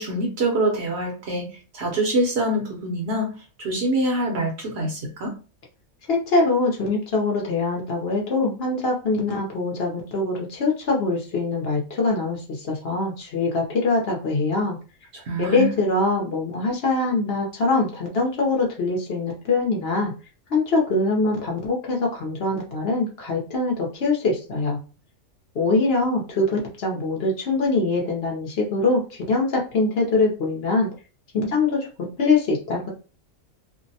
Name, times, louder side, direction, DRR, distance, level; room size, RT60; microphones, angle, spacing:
voice 1, 0.0-1.5 1.7-3.3 3.6-5.3 15.1-15.7, right 1 dB, 60° right, 0 dB, 0.8 m, -25 dB
voice 2, 6.1-14.8 15.4-20.1 20.5-24.8 25.5-30.9 31.3-31.9 32.2-32.9, left 3 dB, 60° left, -1 dB, 0.8 m, -23 dB
2.5 x 2.0 x 2.6 m, 0.35 s
omnidirectional pair, 1.4 m